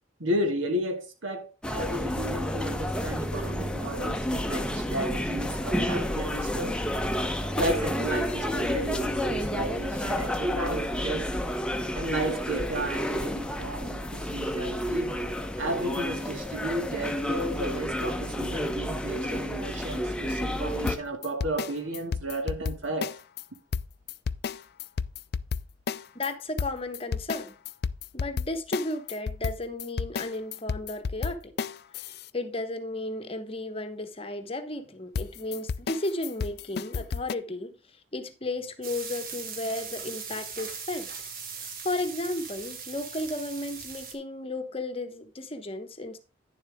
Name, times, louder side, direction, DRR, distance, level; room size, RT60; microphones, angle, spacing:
voice 1, 0.2-6.8 7.6-11.3 12.0-15.2 15.6-23.1, right 1 dB, 80° right, 2.1 m, -33 dB
sound 1, 1.6-21.0, equal, 5° left, 0.8 m, -30 dB
sound 2, 20.9-23.4 23.7-26.3 26.6-32.3 35.2-37.3, left 5 dB, 50° left, 0.4 m, -32 dB
voice 2, 26.1-27.6 28.1-31.5 32.1-37.8 38.1-41.1 41.5-46.2, left 2 dB, 30° left, 1.0 m, -34 dB
sound 3, 38.8-44.1, right 6 dB, 45° right, 1.8 m, -39 dB
10.0 x 7.3 x 3.5 m
head